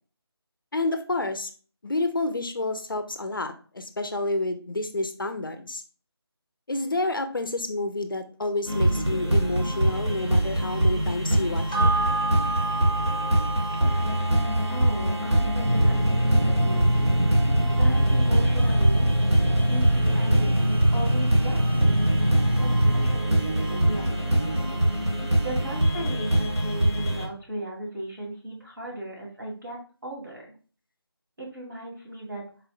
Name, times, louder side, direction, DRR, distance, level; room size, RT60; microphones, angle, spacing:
voice 1, 0.7-1.5 1.8-5.8 6.7-11.9, left 2 dB, 55° left, 8 dB, 0.4 m, -29 dB
sound 1, 8.7-27.3, right 1 dB, 90° right, 1.2 m, -24 dB
sound 2, 11.7-20.5 20.8-20.9, right 2 dB, 15° left, 0.9 m, -33 dB
voice 2, 14.7-17.2 17.7-19.1 19.5-22.1 22.6-24.4 25.4-30.4 31.4-32.4, right 1 dB, 50° right, -2 dB, 1.8 m, -37 dB
sound 3, 15.6-23.2, equal, 70° right, 0.8 m, -24 dB
4.1 x 2.6 x 2.5 m, 0.38 s
figure-of-eight pair, 165°, 14 cm